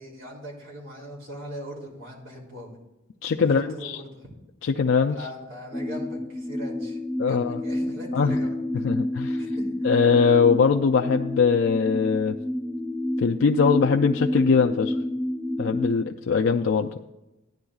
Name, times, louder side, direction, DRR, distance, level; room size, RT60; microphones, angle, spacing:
voice 1, 0.0-2.8 3.4-4.3 5.1-8.6 9.6-9.9, equal, 75° right, -2 dB, 2.9 m, -40 dB
voice 2, 3.2-4.0 4.6-5.2 7.2-7.6 8.1-8.4 8.8-9.4 9.8-12.4 13.2-15.0 15.6-16.9, left 5 dB, 70° left, 3 dB, 0.4 m, -21 dB
sound 1, 5.7-15.9, left 1 dB, 5° left, 0.4 m, -29 dB
14.5 x 9.9 x 2.4 m, 1.0 s
head